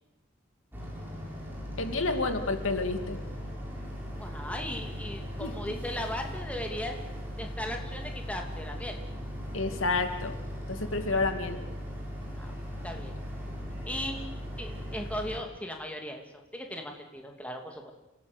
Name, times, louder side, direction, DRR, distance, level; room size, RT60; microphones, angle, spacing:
Boat Water vehicle, 0.7-15.4, equal, 10° right, 7.4 m, -38 dB
voice 1, 1.8-3.2 5.4-5.5 9.5-10.3 10.7-11.6, left 3 dB, 90° left, 7 dB, 2.5 m, -29 dB
voice 2, 4.2-7.0 7.4-9.0 12.4-12.5 12.8-13.1 13.8-17.9, left 1 dB, 5° left, 3 dB, 2.8 m, -37 dB
28.5 x 17.5 x 8.2 m, 0.98 s
head